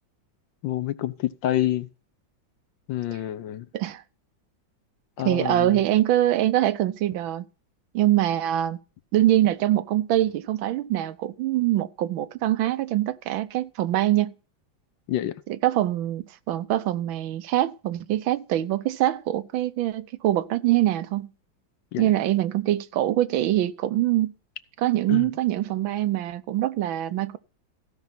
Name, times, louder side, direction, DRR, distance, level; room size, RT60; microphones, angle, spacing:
voice 1, 0.6-1.9 2.9-3.7 5.2-5.8 15.1-15.4 21.9-22.1 25.1-25.3, left 13 dB, 75° left, 1.4 m, -27 dB
voice 2, 5.2-7.4 7.9-8.8 9.1-14.3 15.5-21.3 22.0-24.3 24.8-27.4, right 13 dB, 85° right, 1.5 m, -24 dB
15.5 x 5.4 x 5.9 m
omnidirectional pair, 2.1 m